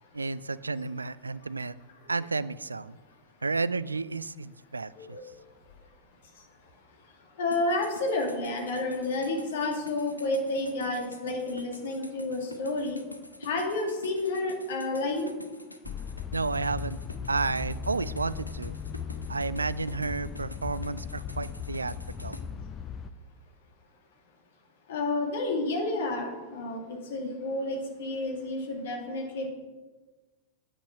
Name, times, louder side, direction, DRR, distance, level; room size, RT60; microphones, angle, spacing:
voice 1, 0.1-1.7 2.1-3.0 3.4-5.2 16.3-17.0 17.3-18.8 19.3-22.0 22.2-22.4, right 3 dB, 80° right, 18 dB, 0.3 m, -31 dB
voice 2, 7.4-13.0 13.4-15.3 24.9-29.5, left 2 dB, 60° left, 2 dB, 2.2 m, -30 dB
sound 1, 7.5-22.4, left 1 dB, 85° left, 0.9 m, -47 dB
sound 2, 15.8-23.1, left 7 dB, 25° left, 0.6 m, -38 dB
8.7 x 8.6 x 5.8 m, 1.3 s
figure-of-eight pair, 90°, 0 cm